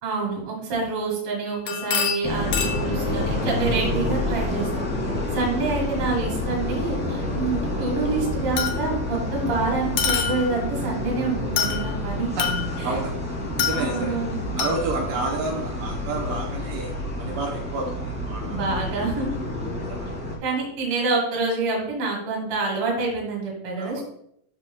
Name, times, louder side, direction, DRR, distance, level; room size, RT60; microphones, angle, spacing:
voice 1, 0.0-4.9 5.3-12.3 12.8-12.9 13.7-14.3 18.4-19.4 20.4-24.0, right 3 dB, 45° right, 0 dB, 2.4 m, -27 dB
sound 1, 1.5-2.9 6.4-6.5 8.6-9.1 10.0-10.7 11.6-12.0 12.4-13.0 13.6-14.2 14.6-14.8, left 7 dB, 75° left, 1.5 m, -27 dB
sound 2, 2.2-20.4, left 1 dB, 5° right, 1.0 m, -28 dB
voice 2, 12.4-13.2 13.6-14.2 14.6-18.7 19.8-20.1 23.8-24.0, right 3 dB, 75° right, -1 dB, 2.5 m, -30 dB
11.5 x 4.8 x 2.3 m, 0.71 s
omnidirectional pair, 4.0 m